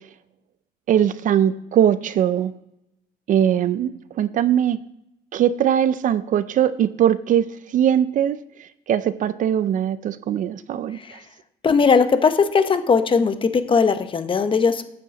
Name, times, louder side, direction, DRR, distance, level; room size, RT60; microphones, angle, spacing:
voice 1, 0.9-2.5 3.3-4.8 5.3-8.4 8.9-11.2, right 10 dB, 50° right, 15 dB, 0.4 m, -20 dB
voice 2, 11.6-14.8, left 5 dB, 30° left, 10 dB, 0.8 m, -19 dB
9.5 x 7.4 x 5.1 m, 0.83 s
cardioid pair, 110°, 17 cm